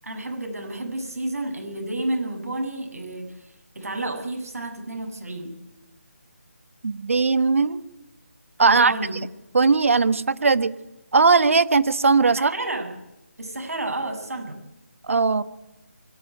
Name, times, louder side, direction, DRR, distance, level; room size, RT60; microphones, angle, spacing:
voice 1, 0.0-5.5 8.6-9.2 12.4-12.9 13.4-14.5, right 2 dB, 85° right, 3 dB, 7.9 m, -31 dB
voice 2, 6.8-7.8 8.6-8.9 9.5-10.7 11.1-12.5 15.1-15.4, right 4 dB, 60° right, 15 dB, 1.4 m, -18 dB
25.0 x 12.0 x 9.1 m, 0.96 s
figure-of-eight pair, 165°, 8 cm